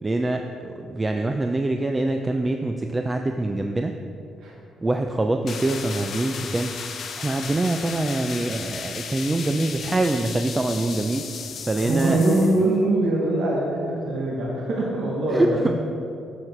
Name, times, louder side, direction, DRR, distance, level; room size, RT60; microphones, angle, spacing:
voice 1, 0.0-4.0 4.8-6.7 7.2-11.3 11.7-12.2 15.3-15.7, right 2 dB, 20° right, 5 dB, 0.4 m, -24 dB
sound 1, 5.5-12.7, left 6 dB, 60° left, 0.7 m, -35 dB
voice 2, 11.8-15.7, right 1 dB, 70° right, -3 dB, 1.3 m, -23 dB
7.8 x 6.3 x 4.4 m, 2.5 s
cardioid pair, 90°, 0 cm